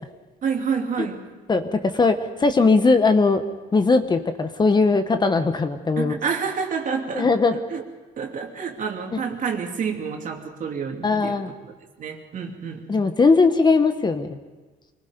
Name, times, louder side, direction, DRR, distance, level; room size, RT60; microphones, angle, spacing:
voice 1, 0.4-1.2 6.0-7.8 8.2-11.4 12.0-12.9, right 6 dB, 50° right, 2 dB, 2.9 m, -28 dB
voice 2, 1.5-3.4 3.7-6.1 7.1-7.5 9.1-9.2 11.0-11.5 12.9-14.4, left 3 dB, 25° left, 8 dB, 1.2 m, -19 dB
25.0 x 20.0 x 5.2 m, 1.3 s
cardioid pair, 110°, 17 cm